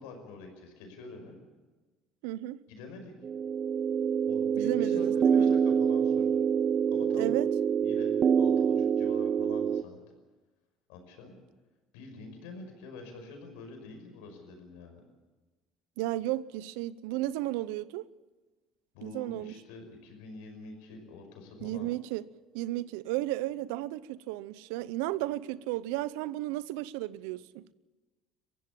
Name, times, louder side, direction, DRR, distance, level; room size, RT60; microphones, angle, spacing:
voice 1, 0.0-1.4 2.7-3.1 4.2-6.4 6.9-7.3 7.8-10.0 10.9-11.4 11.9-15.0 18.9-21.9, left 3 dB, 85° left, 5.5 m, -46 dB
voice 2, 2.2-2.6 4.6-5.5 7.1-7.5 16.0-18.1 19.0-19.6 21.6-22.2 22.5-27.7, right 16 dB, 85° right, 0.7 m, -33 dB
sound 1, 3.2-9.8, right 7 dB, 45° right, 0.6 m, -26 dB
22.5 x 15.0 x 8.5 m
supercardioid pair, 90°, 0 cm